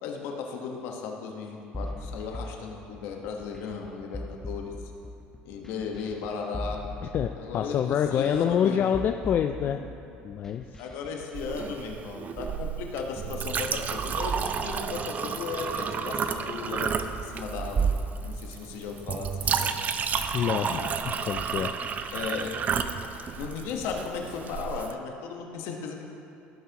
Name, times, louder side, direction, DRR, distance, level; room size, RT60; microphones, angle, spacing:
voice 1, 0.0-4.7 5.4-6.8 7.4-8.9 9.6-9.8 10.8-18.0 18.2-19.9 22.1-22.5 23.4-26.0, left 5 dB, 70° left, 2 dB, 1.2 m, -36 dB
sound 1, 1.7-11.3, left 1 dB, 10° left, 0.7 m, -40 dB
voice 2, 7.1-9.8 10.2-10.6 20.3-21.7, left 9 dB, 45° left, 6 dB, 0.3 m, -26 dB
Chink clink, 11.3-24.9, right 6 dB, 35° right, 0.5 m, -31 dB
15.5 x 5.5 x 2.9 m, 2.7 s
supercardioid pair, 95°, 4 cm